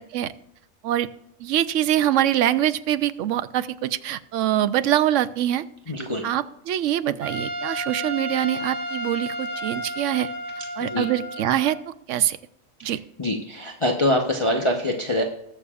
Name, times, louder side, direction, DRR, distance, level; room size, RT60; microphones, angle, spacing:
voice 1, 1.4-5.6 6.2-10.3 10.8-12.4 12.8-13.0, right 12 dB, 70° right, 13 dB, 0.9 m, -24 dB
voice 2, 5.9-6.3 10.8-11.1 12.8-15.2, left 1 dB, 25° left, 1 dB, 0.9 m, -24 dB
Trumpet, 7.2-11.8, right 1 dB, 25° right, 2.1 m, -32 dB
20.5 x 6.8 x 2.4 m, 0.82 s
omnidirectional pair, 1.4 m